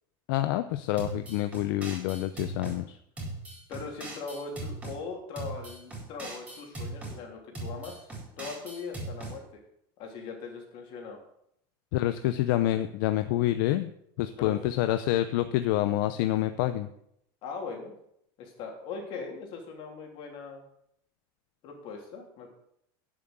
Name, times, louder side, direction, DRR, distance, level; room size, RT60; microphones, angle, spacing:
voice 1, 0.3-3.0 11.9-13.9 14.2-16.9, left 14 dB, 70° left, 9 dB, 0.7 m, -27 dB
sound 1, 1.0-2.8 3.2-5.0 5.3-7.2 7.5-9.3, right 2 dB, 10° right, 4.2 m, -39 dB
voice 2, 3.7-8.1 8.4-9.4 10.0-11.2 14.4-14.6 17.4-17.9 18.4-20.7 21.6-22.5, left 4 dB, 45° left, 1 dB, 3.3 m, -40 dB
10.0 x 7.6 x 8.0 m, 0.74 s
cardioid pair, 165°, 12 cm